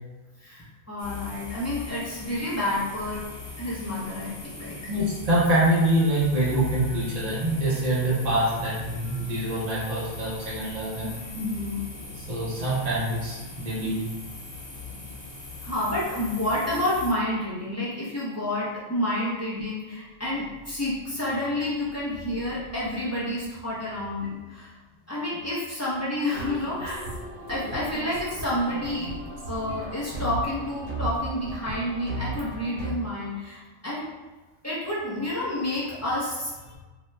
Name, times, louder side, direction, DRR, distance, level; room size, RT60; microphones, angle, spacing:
voice 1, 0.4-3.2 3.6-4.9 11.0-11.8 14.9-15.0 15.6-24.7 25.1-27.0 27.5-29.1 29.5-34.1 34.6-36.8, left 1 dB, 15° left, -9 dB, 0.6 m, -29 dB
sound 1, 1.0-17.1, left 3 dB, 70° left, 1.1 m, -40 dB
voice 2, 4.9-11.1 12.2-14.0, right 1 dB, 40° right, -8 dB, 0.8 m, -25 dB
sound 2, 26.3-32.9, right 2 dB, 90° right, 1.2 m, -36 dB
2.9 x 2.2 x 3.1 m, 1.2 s
omnidirectional pair, 1.2 m